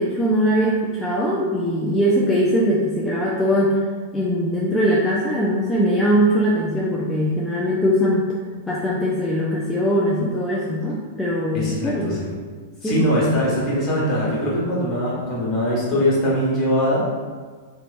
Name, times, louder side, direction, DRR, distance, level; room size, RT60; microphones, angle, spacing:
voice 1, 0.0-3.8 4.1-8.4 8.7-12.2 12.8-13.1, equal, 5° left, -6 dB, 0.4 m, -21 dB
voice 2, 11.5-12.3 12.8-17.1, equal, 35° left, -6 dB, 1.4 m, -22 dB
3.3 x 2.9 x 2.5 m, 1.5 s
figure-of-eight pair, 100°, 0 cm